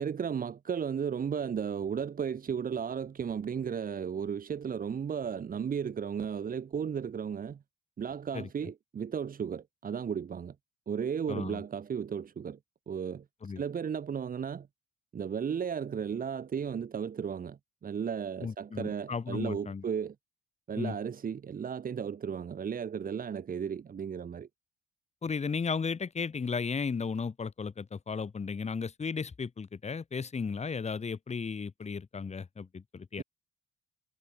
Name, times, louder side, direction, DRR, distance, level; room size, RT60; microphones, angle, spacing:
voice 1, 0.0-7.6 8.0-10.6 10.9-12.6 12.9-14.7 15.1-20.2 20.7-24.5, right 7 dB, 45° right, 1.8 m, -34 dB
voice 2, 11.3-11.6 13.4-13.6 18.4-19.8 20.8-20.9 25.2-33.2, left 5 dB, 35° left, 2.7 m, -35 dB
cardioid pair, 90°, 20 cm